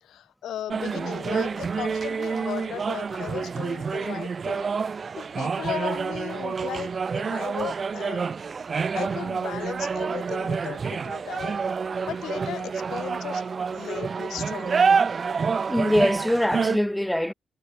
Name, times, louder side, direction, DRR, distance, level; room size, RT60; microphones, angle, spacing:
voice 1, 0.0-4.7 5.2-8.3 8.9-11.6 12.1-13.4 13.7-15.0, left 11 dB, 85° left, 1.0 m, -36 dB
sound 1, 0.7-16.8, right 5 dB, 55° right, 1.8 m, -28 dB
voice 2, 15.6-17.3, left 1 dB, 5° left, 0.9 m, -23 dB
cardioid pair, 55°, 0 cm